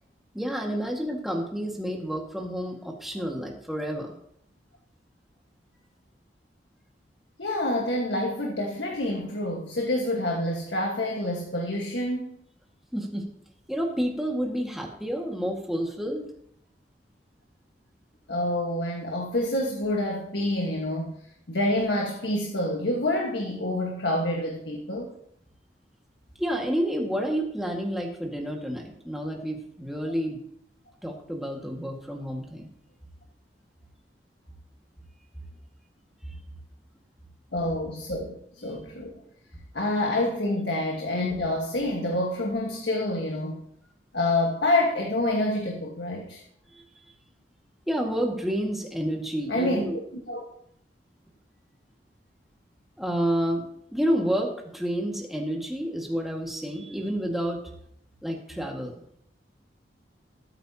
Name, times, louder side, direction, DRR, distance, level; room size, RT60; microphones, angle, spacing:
voice 1, 0.3-4.2 12.9-13.2 13.7-16.2 26.4-30.4 31.0-32.7 36.3-36.4 46.7-46.8 47.9-50.0 53.0-53.6 53.9-57.6 58.2-58.9, equal, ahead, 0 dB, 1.9 m, -29 dB
voice 2, 7.4-12.4 18.3-21.2 21.5-25.1 37.5-39.2 39.7-43.6 44.1-46.4 49.5-49.8 50.3-50.4, left 1 dB, 80° left, 0 dB, 1.6 m, -27 dB
21.0 x 9.0 x 2.9 m, 0.71 s
head